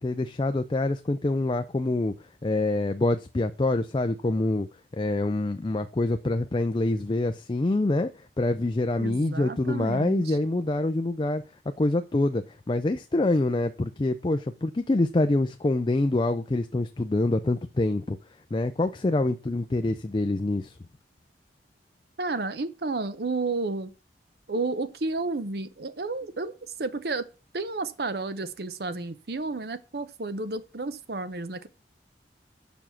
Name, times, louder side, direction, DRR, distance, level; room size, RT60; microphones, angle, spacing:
voice 1, 0.0-2.1 2.4-4.7 5.0-8.1 8.4-11.4 11.8-18.2 18.5-20.8, left 2 dB, 25° left, 0.4 m, -26 dB
voice 2, 9.0-10.4 22.2-23.9 24.5-27.3 27.5-31.7, right 3 dB, 60° right, 0.8 m, -31 dB
7.0 x 6.2 x 5.7 m
head